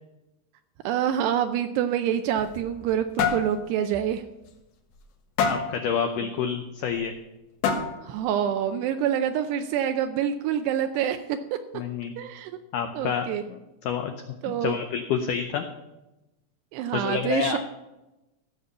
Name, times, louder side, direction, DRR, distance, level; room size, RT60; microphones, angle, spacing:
voice 1, 0.8-4.2 8.0-11.4 12.2-12.5 12.9-13.4 14.4-14.7 16.7-17.6, right 9 dB, 85° right, 7 dB, 2.7 m, -26 dB
sound 1, 2.2-2.9 3.2-3.5 3.9-4.1 4.5-4.6 5.4-5.8 6.9-7.0 7.6-8.1, left 6 dB, 70° left, 3.1 m, -25 dB
voice 2, 5.5-7.1 11.7-12.2 12.7-14.1 14.5-15.6 16.9-17.6, left 7 dB, 85° left, 6 dB, 1.8 m, -28 dB
15.5 x 6.7 x 6.7 m, 0.97 s
omnidirectional pair, 4.8 m